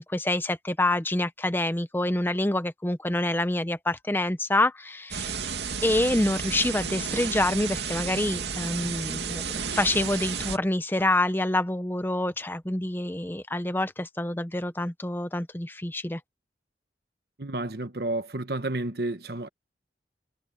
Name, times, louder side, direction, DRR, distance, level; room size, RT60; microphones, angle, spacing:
voice 1, 0.0-5.4 5.8-16.2, left 1 dB, 10° left, 0.7 m, -27 dB
sound 1, 5.1-10.6, right 6 dB, 80° right, 2.5 m, -32 dB
voice 2, 17.4-19.5, right 2 dB, 65° right, 1.2 m, -31 dB
head